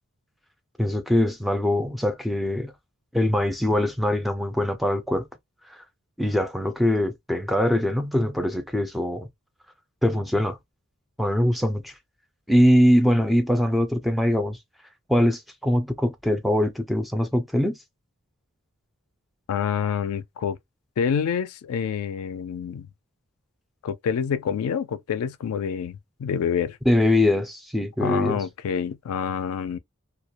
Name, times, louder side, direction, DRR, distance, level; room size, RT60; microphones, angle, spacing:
voice 1, 0.8-2.7 3.1-5.3 5.7-5.8 6.2-9.3 10.0-10.6 11.2-11.9 12.5-14.6 15.1-17.8 26.9-28.4, left 1 dB, ahead, 0.3 m, -22 dB
voice 2, 19.5-20.6 21.0-22.9 23.8-26.8 28.0-29.8, left 7 dB, 80° left, 0.3 m, -27 dB
2.2 x 2.1 x 2.8 m
head